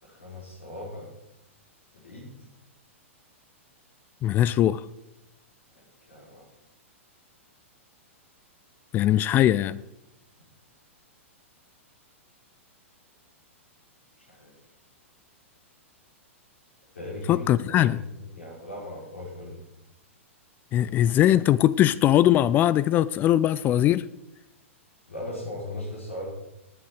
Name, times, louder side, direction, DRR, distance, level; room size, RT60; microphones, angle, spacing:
voice 1, 0.0-1.1 1.9-2.3 5.8-6.4 14.2-14.5 16.9-18.0 18.3-19.6 25.1-26.3, left 1 dB, 75° left, 5.5 m, -38 dB
voice 2, 4.2-4.8 8.9-9.8 17.3-18.0 20.7-24.1, left 12 dB, 25° left, 0.4 m, -21 dB
18.5 x 8.3 x 4.8 m
figure-of-eight pair, 105°, 7 cm